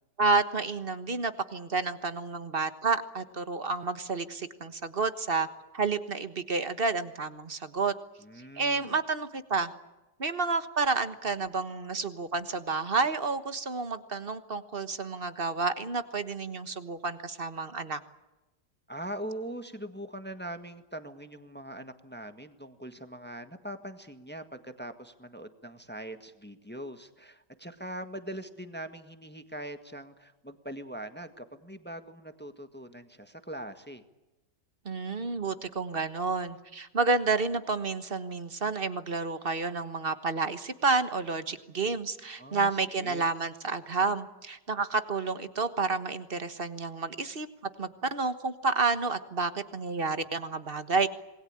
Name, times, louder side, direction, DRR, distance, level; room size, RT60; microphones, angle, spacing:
voice 1, 0.2-5.5 5.7-7.9 8.5-9.7 10.2-18.0 34.8-47.5 47.8-51.1, right 4 dB, 35° right, 11 dB, 1.4 m, -30 dB
voice 2, 8.2-9.0 18.9-34.0 42.4-43.3, right 1 dB, 5° left, 8 dB, 1.5 m, -42 dB
27.0 x 20.5 x 8.9 m, 1.0 s
omnidirectional pair, 1.9 m